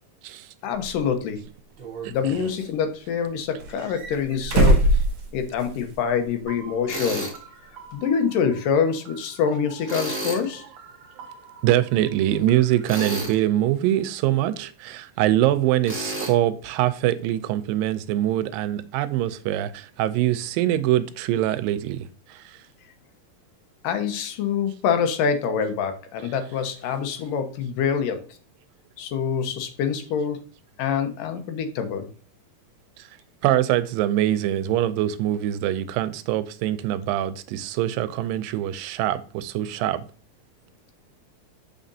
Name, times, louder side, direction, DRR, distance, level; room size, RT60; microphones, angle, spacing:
voice 1, 0.6-1.4 2.1-4.8 5.3-7.3 7.9-10.7 23.8-28.3 29.0-30.4 30.8-32.1, left 7 dB, 80° left, 2.5 m, -25 dB
sound 1, 0.8-0.9 1.8-2.7 3.6-5.9 6.2-6.3 7.9-8.0, right 1 dB, 50° right, 1.7 m, -22 dB
voice 2, 2.0-2.5 11.6-22.4 26.2-26.3 33.4-40.0, right 13 dB, 90° right, 2.3 m, -24 dB
sound 2, 6.5-13.3, right 6 dB, 65° right, 1.8 m, -46 dB
Tools, 6.9-7.4 9.9-10.4 12.8-13.4 15.8-16.3, right 1 dB, 5° right, 1.6 m, -30 dB
7.2 x 5.0 x 2.7 m
omnidirectional pair, 3.9 m